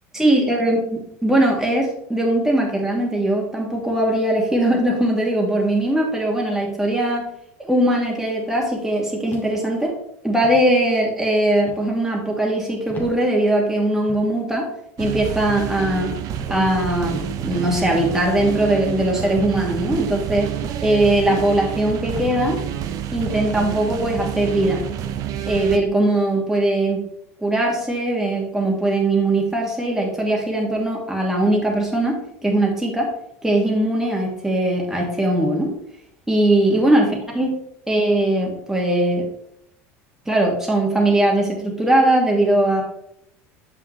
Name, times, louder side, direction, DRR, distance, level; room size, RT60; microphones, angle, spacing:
voice 1, 0.1-0.8 1.2-7.3 7.6-9.9 10.2-14.7 15.0-16.1 16.5-20.5 20.8-22.6 23.1-24.9 25.5-27.0 27.4-33.1 33.4-35.7 36.3-37.5 37.9-39.3 40.3-42.8, right 1 dB, 5° right, -1 dB, 2.4 m, -20 dB
sound 1, 9.3-9.8 10.4-10.7 11.7-11.9 12.9-13.2 14.1-14.3 15.3-15.5 16.4-16.6 17.4-17.7 18.7-18.9 19.8-20.0 20.9-21.2 22.1-22.4 23.2-23.4 24.3-24.6 25.5-25.7, left 1 dB, 25° left, 2.5 m, -38 dB
sound 2, 15.0-25.8, right 10 dB, 55° right, 0.8 m, -28 dB
7.8 x 5.7 x 3.4 m, 0.75 s
supercardioid pair, 95°, 7 cm